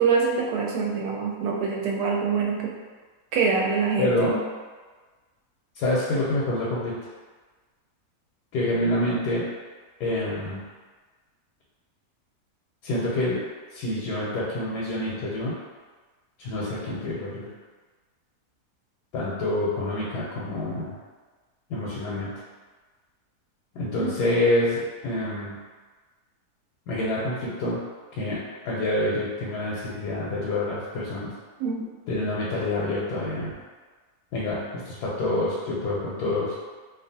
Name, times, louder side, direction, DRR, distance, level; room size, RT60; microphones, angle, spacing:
voice 1, 0.0-2.7 3.3-4.4 24.0-24.1 31.6-31.9, right 5 dB, 90° right, -1 dB, 1.1 m, -25 dB
voice 2, 4.0-4.3 5.7-7.0 8.5-9.5 10.0-10.6 12.8-13.4 13.7-15.6 16.4-17.5 19.1-20.9 21.7-22.3 23.7-25.6 26.9-27.8 28.1-31.3 32.1-33.5 34.3-36.6, left 1 dB, 85° left, -6 dB, 1.2 m, -27 dB
2.7 x 2.4 x 2.6 m, 1.4 s
omnidirectional pair, 1.7 m